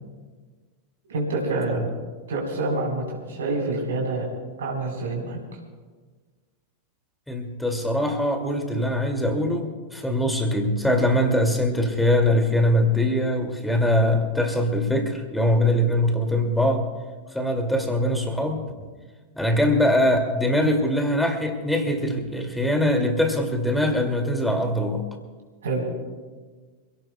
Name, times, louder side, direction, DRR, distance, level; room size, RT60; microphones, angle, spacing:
voice 1, 1.1-1.8 2.3-4.2 4.6-5.4 25.6-25.8, right 2 dB, 65° right, -2 dB, 4.1 m, -27 dB
voice 2, 7.3-16.9 17.3-18.6 19.4-25.0, left 1 dB, 5° left, 4 dB, 2.3 m, -22 dB
27.5 x 17.0 x 2.3 m, 1.4 s
figure-of-eight pair, 90°, 0 cm